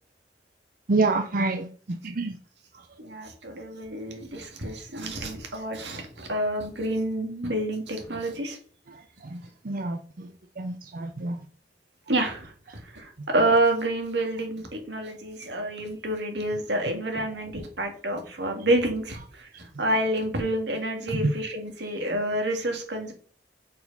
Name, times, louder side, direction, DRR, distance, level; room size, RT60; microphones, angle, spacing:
voice 1, 0.9-2.4 2.7-2.8 8.9-10.3 10.6-11.4 19.5-19.6 21.1-21.3 21.8-21.9, right 3 dB, 50° right, 6 dB, 0.6 m, -28 dB
voice 2, 3.0-8.6 12.1-23.1, right 1 dB, 85° right, 3 dB, 1.9 m, -28 dB
6.3 x 4.7 x 5.3 m, 0.44 s
head